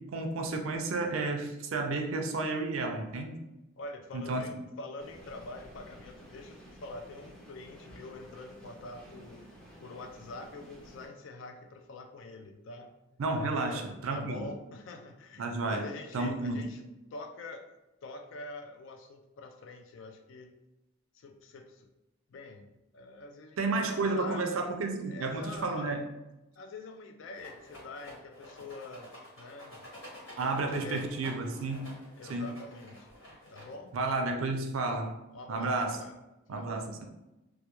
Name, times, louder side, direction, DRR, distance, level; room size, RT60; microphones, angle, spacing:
voice 1, 0.0-3.4 4.1-4.5 13.2-14.5 15.4-15.9 16.1-16.7 23.6-26.1 30.4-31.9 32.3-32.5 33.9-35.2 35.5-36.0 36.5-37.1, right 3 dB, 80° right, 4 dB, 0.4 m, -32 dB
voice 2, 3.8-9.4 9.8-12.9 13.5-16.8 17.1-17.7 18.0-20.5 21.1-21.9 22.3-22.7 22.9-24.4 25.1-25.9 26.5-29.8 30.4-31.0 32.2-33.1 33.5-33.9 35.3-36.2 36.5-36.7, left 3 dB, 65° left, 5 dB, 0.3 m, -45 dB
sound 1, 5.0-11.1, equal, 5° left, 0.4 m, -52 dB
Rattle, 27.3-34.0, left 1 dB, 90° left, 1.4 m, -50 dB
2.2 x 2.2 x 2.9 m, 0.96 s
head